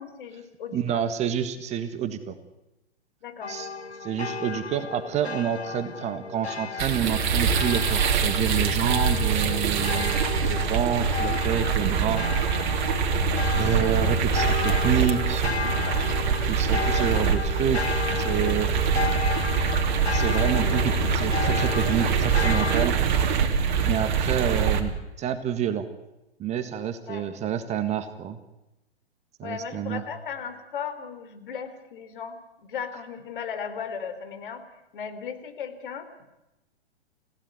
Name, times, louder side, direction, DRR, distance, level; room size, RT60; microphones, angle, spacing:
voice 1, 0.0-1.0 3.2-3.5 8.8-9.0 27.1-27.3 29.4-32.4 32.7-34.6 34.9-36.1, left 7 dB, 55° left, 8 dB, 3.7 m, -36 dB
voice 2, 0.7-2.3 3.5-3.7 4.0-12.3 13.6-15.4 16.2-18.7 20.1-23.4 23.8-25.9 26.4-28.4 29.4-30.0, right 8 dB, 20° right, 10 dB, 1.6 m, -28 dB
sound 1, 3.4-22.9, left 5 dB, 85° left, 1.2 m, -33 dB
sound 2, 6.8-24.8, right 5 dB, 50° right, 3.2 m, -24 dB
29.0 x 16.5 x 9.5 m, 0.96 s
figure-of-eight pair, 115°, 31 cm